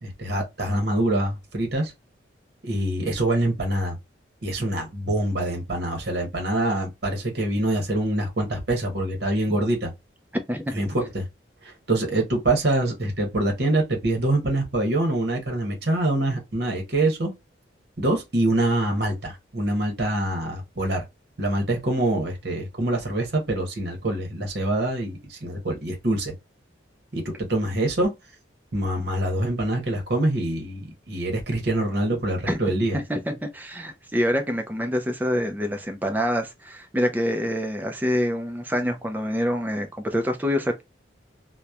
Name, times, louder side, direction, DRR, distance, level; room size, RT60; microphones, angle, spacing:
voice 1, 0.0-1.9 2.6-3.9 4.4-9.9 10.7-11.3 11.6-17.3 18.0-21.0 21.4-26.3 27.1-27.2 27.5-28.1 28.7-33.0, right 1 dB, 55° right, 0.9 m, -25 dB
voice 2, 10.5-10.8 32.5-32.6 32.9-40.8, equal, 10° right, 0.4 m, -26 dB
2.9 x 2.1 x 2.3 m
head